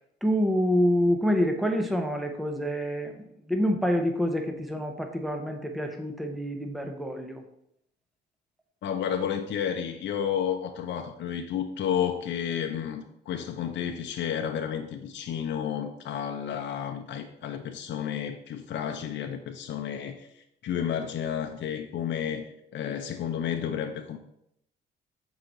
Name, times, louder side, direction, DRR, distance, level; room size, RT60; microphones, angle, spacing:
voice 1, 0.2-3.2 3.5-7.4, equal, ahead, 4 dB, 0.8 m, -27 dB
voice 2, 8.8-24.2, left 8 dB, 65° left, 5 dB, 0.6 m, -31 dB
5.7 x 4.8 x 3.9 m, 0.76 s
cardioid pair, 90°, 20 cm